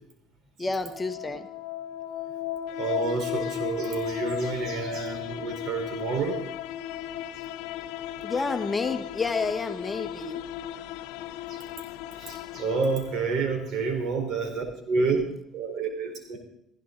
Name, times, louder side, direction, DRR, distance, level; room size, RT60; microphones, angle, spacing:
voice 1, 0.6-1.4 8.2-10.4, left 4 dB, 25° left, 8 dB, 1.4 m, -29 dB
sound 1, 0.9-13.7, left 11 dB, 85° left, 0.7 m, -36 dB
voice 2, 2.8-6.4 11.5-11.6 12.2-15.2 15.5-16.4, right 4 dB, 65° right, 4 dB, 4.6 m, -29 dB
16.5 x 15.5 x 4.0 m, 0.73 s
supercardioid pair, 85°, 0 cm